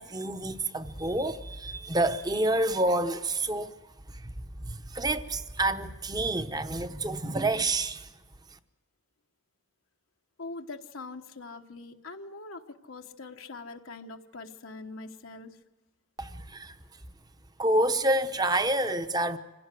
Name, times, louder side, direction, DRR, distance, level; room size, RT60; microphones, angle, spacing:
voice 1, 0.0-3.7 4.1-4.3 4.6-8.1 16.2-16.8 17.6-19.4, right 1 dB, 20° right, 0.9 m, -28 dB
voice 2, 10.4-15.6, left 3 dB, 80° left, 1.1 m, -43 dB
26.0 x 16.5 x 7.6 m
head